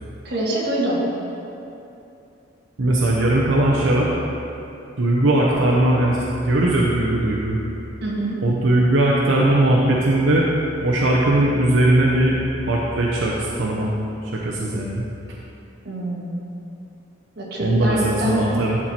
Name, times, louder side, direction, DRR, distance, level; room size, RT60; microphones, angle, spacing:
voice 1, 0.2-1.0 8.0-8.4 15.8-16.3 17.3-18.4, right 1 dB, 60° right, -5 dB, 1.7 m, -25 dB
voice 2, 2.8-4.1 5.0-7.6 8.4-10.5 10.8-12.4 12.6-13.9 14.2-15.0 17.6-18.8, right 1 dB, 90° right, -4 dB, 0.8 m, -19 dB
12.0 x 4.5 x 4.3 m, 2.8 s
head